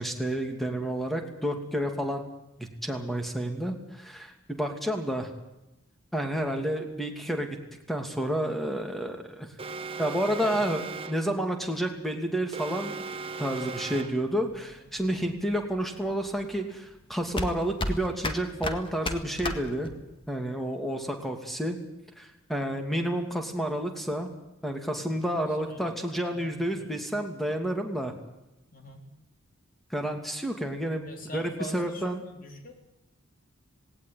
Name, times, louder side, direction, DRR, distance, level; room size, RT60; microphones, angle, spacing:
voice 1, 0.0-2.2 2.6-5.3 6.1-7.6 7.9-9.5 10.0-12.9 13.4-19.9 20.3-21.8 22.2-24.3 24.6-28.1 29.9-32.2, right 1 dB, ahead, 4 dB, 2.7 m, -30 dB
Alarm, 9.6-11.3 12.5-14.3, right 4 dB, 25° right, 1.3 m, -37 dB
sound 1, 14.3-20.3, left 1 dB, 25° left, 1.9 m, -34 dB
voice 2, 25.3-27.0 28.7-29.1 31.0-32.7, equal, 40° left, 4 dB, 4.1 m, -44 dB
19.0 x 18.0 x 9.4 m, 0.96 s
head